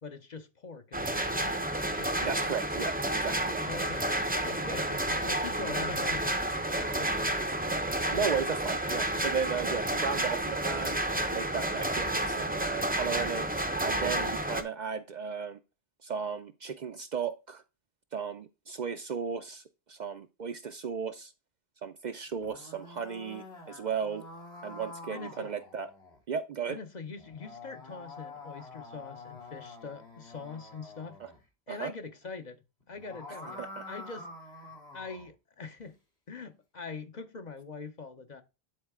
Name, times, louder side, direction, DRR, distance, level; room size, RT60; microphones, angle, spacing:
voice 1, 0.0-1.6 1.9-2.4 3.6-6.4 6.8-7.5 25.1-25.5 26.7-31.2 31.7-34.3 34.6-36.0 36.3-38.4, left 4 dB, 45° left, 0.8 m, -43 dB
sound 1, 0.9-14.6, right 1 dB, 10° right, 0.5 m, -30 dB
voice 2, 2.2-3.6 8.1-11.0 11.3-13.5 13.8-15.6 16.0-17.6 18.1-19.6 19.9-21.3 21.8-24.2 24.6-25.9 26.3-26.8 31.2-31.3 31.7-31.9 33.3-33.8, right 6 dB, 55° right, 0.6 m, -35 dB
sound 2, 22.3-26.2 27.2-31.4 32.8-35.3, left 3 dB, 80° left, 2.9 m, -47 dB
9.7 x 4.0 x 3.6 m
omnidirectional pair, 1.0 m